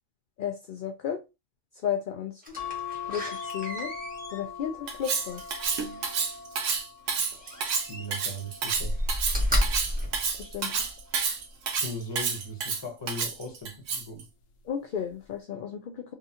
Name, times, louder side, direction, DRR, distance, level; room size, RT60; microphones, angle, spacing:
voice 1, 0.4-1.2 1.8-2.4 3.1-3.9 4.3-5.4 10.4-10.8 14.7-16.1, left 8 dB, 65° left, 0.5 m, -33 dB
Slam, 2.4-6.3 7.4-8.3 8.7-11.0 11.5-11.6, equal, 5° right, 1.0 m, -32 dB
sound 1, 2.6-9.2 9.8-11.2 12.5-12.9 13.2-13.3, left 7 dB, 85° left, 1.0 m, -42 dB
Cutlery silverware, 4.9-14.2, right 5 dB, 80° right, 1.1 m, -29 dB
voice 2, 7.3-9.0 10.8-10.9 11.8-14.2, equal, 25° left, 0.7 m, -39 dB
3.7 x 2.5 x 2.7 m
omnidirectional pair, 1.3 m